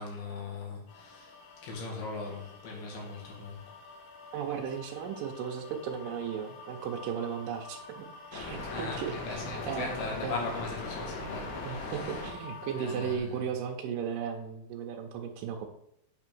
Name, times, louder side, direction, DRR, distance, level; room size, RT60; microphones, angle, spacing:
voice 1, 0.0-1.3 1.6-3.7 8.7-12.2 12.8-13.4, left 3 dB, 80° left, -1 dB, 3.7 m, -39 dB
sound 1, 0.9-13.2, left 3 dB, 60° left, 2.6 m, -43 dB
voice 2, 4.3-10.4 11.6-15.7, right 7 dB, 75° right, 1 dB, 2.2 m, -36 dB
8.1 x 3.6 x 6.0 m, 0.74 s
omnidirectional pair, 4.3 m